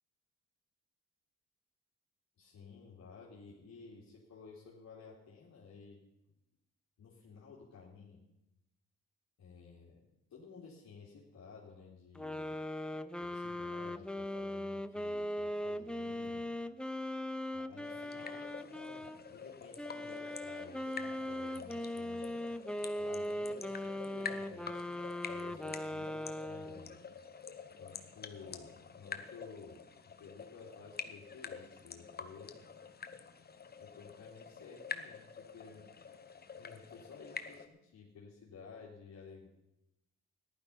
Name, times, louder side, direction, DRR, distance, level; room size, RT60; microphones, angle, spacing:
voice 1, 2.4-6.0 7.0-8.2 9.4-10.0 10.3-12.6 13.2-16.5 17.5-22.4 23.0-27.0 27.8-29.9 30.2-32.6 33.8-35.9 36.5-39.5, left 5 dB, 60° left, -5 dB, 3.2 m, -54 dB
sound 1, 12.1-19.2 19.8-26.9, left 1 dB, 5° left, 0.6 m, -39 dB
sound 2, 17.8-37.7, left 5 dB, 30° left, 1.2 m, -48 dB
14.5 x 11.5 x 5.7 m, 0.91 s
cardioid pair, 90°, 30 cm